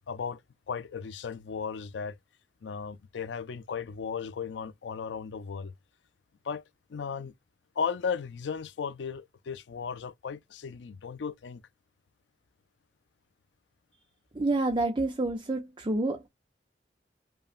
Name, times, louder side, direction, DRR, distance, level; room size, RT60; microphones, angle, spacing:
voice 1, 0.1-0.4 0.7-2.2 2.6-5.7 6.4-6.6 6.9-7.3 7.8-11.6, left 6 dB, 90° left, 0.4 m, -35 dB
voice 2, 14.3-16.3, right 2 dB, 25° right, 0.5 m, -28 dB
5.4 x 2.1 x 2.4 m
head